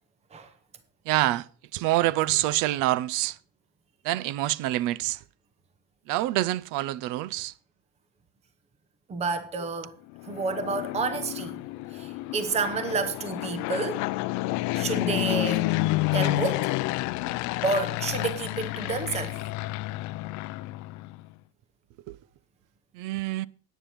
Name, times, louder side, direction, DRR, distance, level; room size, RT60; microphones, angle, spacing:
voice 1, 1.1-1.4 1.7-3.4 4.0-5.2 6.1-7.5 22.1-22.2 22.9-23.5, right 16 dB, 60° right, 0.6 m, -26 dB
voice 2, 9.1-9.9 10.2-11.6 11.9-14.1 14.7-15.7 16.1-16.7 17.6-19.4, right 4 dB, 15° right, 0.9 m, -30 dB
Fixed-wing aircraft airplane, 10.1-21.2, left 19 dB, 55° left, 0.5 m, -30 dB
10.0 x 9.3 x 5.7 m
cardioid pair, 175°, 36 cm